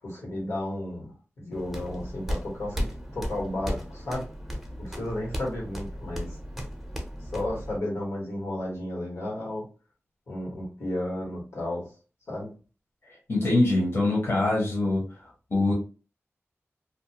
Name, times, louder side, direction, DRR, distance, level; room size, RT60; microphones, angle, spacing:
voice 1, 0.0-4.3 4.8-6.4 7.3-9.6 10.3-11.9 12.3-12.5, left 1 dB, 85° left, -3 dB, 1.4 m, -33 dB
sound 1, 1.5-7.8, equal, 5° right, 0.6 m, -35 dB
voice 2, 13.1-15.0 15.5-15.7, left 2 dB, 55° left, -3 dB, 0.9 m, -24 dB
2.5 x 2.1 x 2.9 m, 0.35 s
wide cardioid pair, 95°, 5 cm